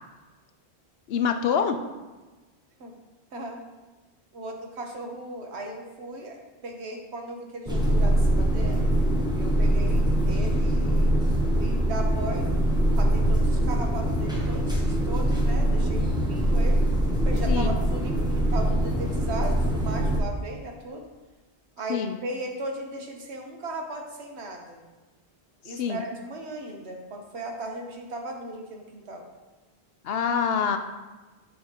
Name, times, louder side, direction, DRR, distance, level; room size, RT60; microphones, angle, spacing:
voice 1, 1.1-1.8 17.5-17.8 21.9-22.2 25.7-26.0 30.0-30.8, left 7 dB, 70° left, 7 dB, 0.8 m, -25 dB
voice 2, 4.3-6.4 6.6-8.9 9.4-11.2 11.5-12.5 13.0-16.8 17.2-21.1 21.8-24.8 25.6-29.2, right 1 dB, 85° right, 2 dB, 1.3 m, -37 dB
sound 1, 7.7-20.2, right 1 dB, 5° right, 0.9 m, -23 dB
8.4 x 5.5 x 2.9 m, 1.2 s
omnidirectional pair, 1.1 m